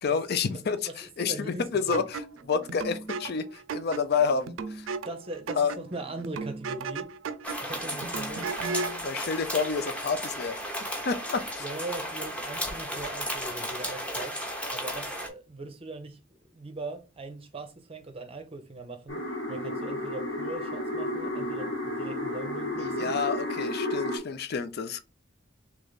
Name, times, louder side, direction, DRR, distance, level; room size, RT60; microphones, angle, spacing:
voice 1, 0.0-2.2 2.5-4.9 5.6-5.7 9.0-10.6 11.0-11.6 22.8-25.0, left 5 dB, 55° left, 0.5 m, -29 dB
voice 2, 0.9-2.0 5.0-7.1 7.6-8.7 11.6-14.5 14.7-16.2 16.5-23.2, right 2 dB, 30° right, 0.6 m, -40 dB
sound 1, 1.9-9.0, right 4 dB, 80° right, 0.4 m, -36 dB
sound 2, 7.4-15.3, equal, 5° left, 0.8 m, -34 dB
sound 3, 19.1-24.2, left 1 dB, 85° left, 2.1 m, -32 dB
3.4 x 3.3 x 3.9 m
head